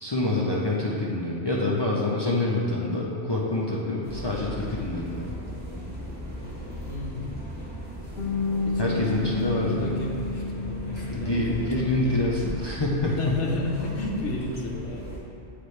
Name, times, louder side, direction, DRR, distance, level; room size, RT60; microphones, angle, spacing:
voice 1, 0.0-5.3 8.8-10.0 11.1-13.3, left 2 dB, 45° left, -4 dB, 0.3 m, -26 dB
sound 1, 4.0-15.2, equal, 10° right, 1.1 m, -37 dB
voice 2, 6.9-7.4 8.6-11.9 13.2-15.1, left 1 dB, 80° left, -1 dB, 1.1 m, -33 dB
Bass guitar, 8.2-14.4, left 3 dB, 60° left, 0.8 m, -32 dB
7.9 x 4.0 x 3.2 m, 2.6 s
omnidirectional pair, 1.2 m